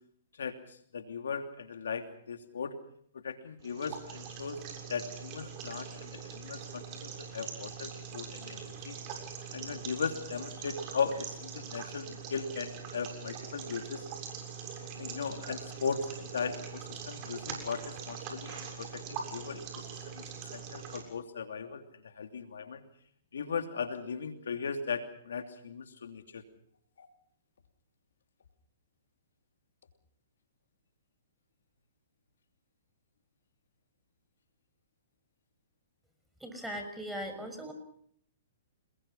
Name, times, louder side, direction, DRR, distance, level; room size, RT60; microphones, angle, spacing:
voice 1, 0.9-2.7 3.1-4.6 4.9-9.0 9.5-14.0 15.0-22.8 23.3-26.4 27.0-27.1, left 6 dB, 80° left, 7 dB, 2.9 m, -38 dB
sound 1, 3.6-21.0, right 6 dB, 40° right, 7.1 m, -43 dB
voice 2, 36.4-37.7, equal, 5° right, 5 dB, 6.2 m, -39 dB
29.5 x 21.5 x 5.6 m, 0.66 s
hypercardioid pair, 130°, 0 cm